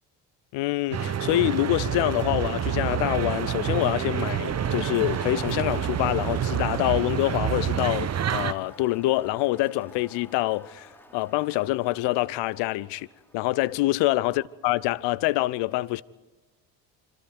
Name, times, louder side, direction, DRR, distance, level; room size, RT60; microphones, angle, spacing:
voice 1, 0.5-13.1 13.3-16.0, left 18 dB, 55° left, 0.7 m, -26 dB
sound 1, 0.9-8.5, right 9 dB, 30° right, 1.0 m, -28 dB
Crowd, 1.3-13.8, left 1 dB, 5° left, 3.0 m, -49 dB
sound 2, 2.4-2.7 4.6-6.7, right 10 dB, 50° right, 1.4 m, -48 dB
27.0 x 26.0 x 4.8 m
figure-of-eight pair, 50°, 49 cm